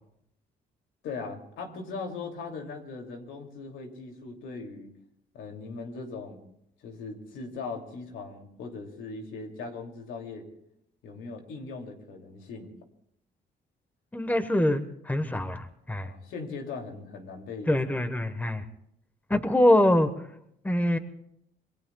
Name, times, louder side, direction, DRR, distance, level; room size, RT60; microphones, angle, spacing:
voice 1, 1.0-4.9 5.3-6.5 6.8-10.5 11.0-12.7 16.0-17.7, left 4 dB, 90° left, 2 dB, 2.8 m, -39 dB
voice 2, 14.1-16.1 17.7-18.6 19.3-20.1 20.6-21.0, left 1 dB, 10° left, 10 dB, 1.2 m, -24 dB
27.5 x 22.0 x 2.3 m, 0.75 s
cardioid pair, 90°, 20 cm